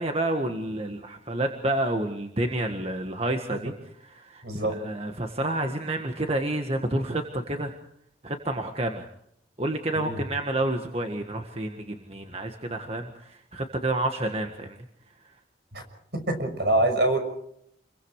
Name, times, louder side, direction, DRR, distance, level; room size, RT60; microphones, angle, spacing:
voice 1, 0.0-3.7 4.0-7.8 8.2-9.1 9.6-14.8, right 1 dB, 35° right, 4 dB, 1.7 m, -29 dB
voice 2, 4.4-4.7 9.9-10.2 15.7-15.8 16.1-17.2, right 1 dB, 65° right, 7 dB, 6.2 m, -25 dB
29.0 x 23.0 x 4.9 m, 0.72 s
head